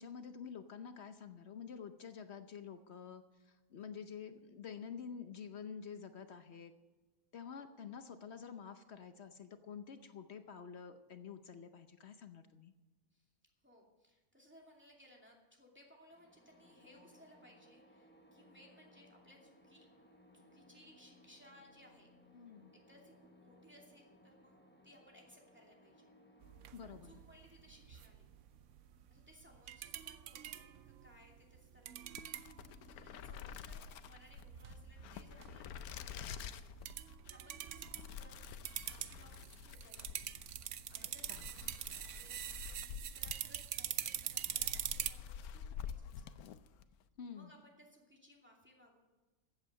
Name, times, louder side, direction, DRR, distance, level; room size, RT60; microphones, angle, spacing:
voice 1, 0.0-6.7 7.3-12.7 22.3-22.7 26.7-27.1 41.0-41.4 47.2-47.5, left 7 dB, 55° left, 9 dB, 0.9 m, -49 dB
voice 2, 13.6-19.9 20.3-22.1 22.7-26.1 26.8-28.3 29.1-32.1 32.7-38.6 38.9-46.5 47.3-49.0, left 1 dB, 10° right, -1 dB, 2.5 m, -63 dB
sound 1, 16.1-29.8, left 1 dB, 10° left, 1.1 m, -65 dB
sound 2, 26.4-45.1, right 11 dB, 65° right, 0.9 m, -45 dB
sound 3, 32.0-46.9, left 8 dB, 85° left, 1.2 m, -49 dB
15.0 x 8.4 x 6.5 m, 1.2 s
omnidirectional pair, 1.5 m